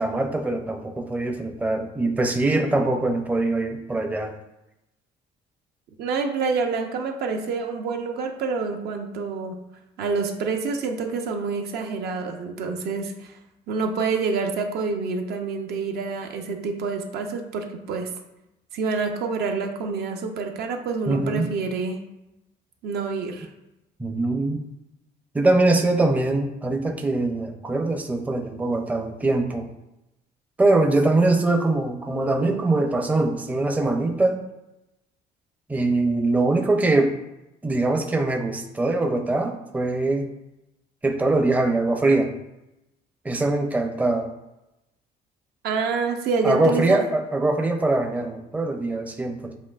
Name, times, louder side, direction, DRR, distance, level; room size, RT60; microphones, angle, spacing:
voice 1, 0.0-4.3 21.1-21.5 24.0-24.6 25.3-29.7 30.6-34.4 35.7-37.1 37.6-40.3 41.0-42.3 43.2-44.3 46.4-49.5, right 2 dB, 10° right, 4 dB, 0.5 m, -22 dB
voice 2, 6.0-9.6 10.0-13.3 13.7-18.1 18.7-22.0 22.8-23.5 45.6-47.1, right 4 dB, 70° right, 4 dB, 0.7 m, -27 dB
7.5 x 2.6 x 2.4 m, 0.92 s
cardioid pair, 110°, 17 cm